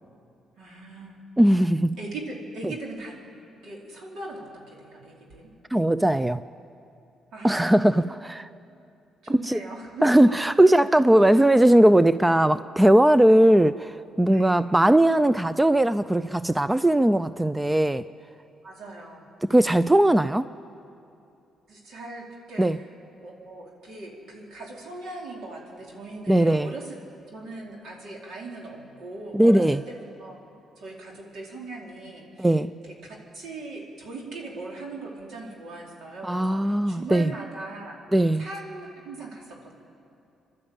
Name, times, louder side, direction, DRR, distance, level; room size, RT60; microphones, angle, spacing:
voice 1, 0.6-1.2 2.0-3.1 3.6-5.5 7.3-8.0 9.2-10.5 11.1-11.2 13.2-13.4 14.3-14.5 18.6-19.3 21.7-22.8 23.2-27.0 27.3-30.4 30.8-32.5 32.8-38.0 38.4-39.7, right 2 dB, 70° right, -1 dB, 4.4 m, -39 dB
voice 2, 1.4-2.0 2.6-2.7 5.7-6.4 7.4-8.5 9.3-9.6 10.0-18.0 19.5-20.5 22.6-22.8 26.3-26.7 29.3-29.8 32.4-32.7 36.2-37.3 38.1-38.5, right 1 dB, 10° right, 14 dB, 0.4 m, -19 dB
27.5 x 12.0 x 8.9 m, 2.7 s
cardioid pair, 90°, 0 cm